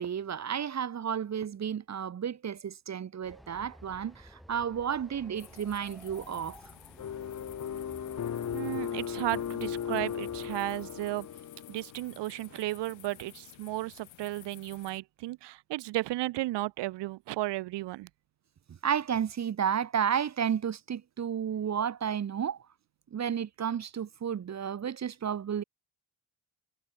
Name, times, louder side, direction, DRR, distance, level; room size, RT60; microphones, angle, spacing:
voice 1, 0.0-6.6 18.7-22.6 23.1-25.6, right 8 dB, 35° right, 0.9 m, -32 dB
Train, 3.2-11.4, equal, ahead, 1.8 m, -54 dB
sound 1, 5.3-15.0, left 14 dB, 90° left, 2.3 m, -54 dB
sound 2, 7.0-12.2, left 8 dB, 40° left, 1.2 m, -36 dB
voice 2, 8.5-11.3 11.7-18.1, right 17 dB, 70° right, 0.5 m, -34 dB
cardioid pair, 120°, 45 cm